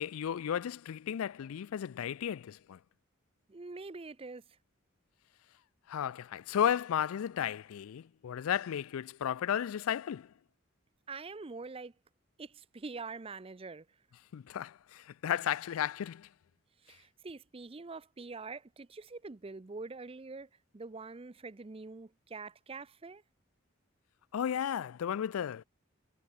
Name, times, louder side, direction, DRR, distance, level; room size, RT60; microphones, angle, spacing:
voice 1, 0.0-2.8 5.9-10.3 14.3-16.3 24.3-25.6, left 9 dB, 85° left, 0.4 m, -34 dB
voice 2, 3.5-4.6 11.1-11.9 12.4-13.9 16.8-23.2, right 3 dB, 25° right, 0.5 m, -45 dB
head